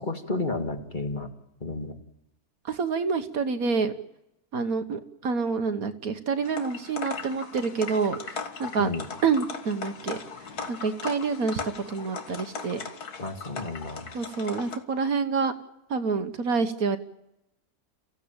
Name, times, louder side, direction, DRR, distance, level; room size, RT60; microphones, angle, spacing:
voice 1, 0.1-1.3 1.6-2.0 8.8-9.0 13.2-14.1, left 2 dB, 30° left, 5 dB, 2.1 m, -31 dB
voice 2, 2.6-3.9 4.5-8.9 9.2-10.2 10.7-11.6 11.9-12.8 14.1-15.5 15.9-17.0, right 5 dB, 65° right, 9 dB, 1.6 m, -27 dB
sound 1, 6.4-14.8, left 5 dB, 75° left, 2.2 m, -38 dB
30.0 x 16.0 x 8.9 m, 0.90 s
omnidirectional pair, 1.7 m